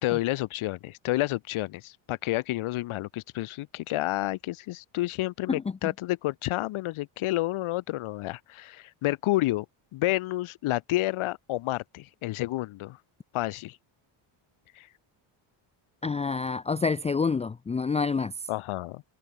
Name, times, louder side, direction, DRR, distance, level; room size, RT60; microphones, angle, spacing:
voice 1, 0.0-9.7 9.9-13.0 13.3-13.8 14.7-14.9 18.5-19.0, left 17 dB, 75° left, 2.3 m, -30 dB
voice 2, 16.0-18.5, left 4 dB, 15° left, 0.5 m, -28 dB
cardioid pair, 150°, 49 cm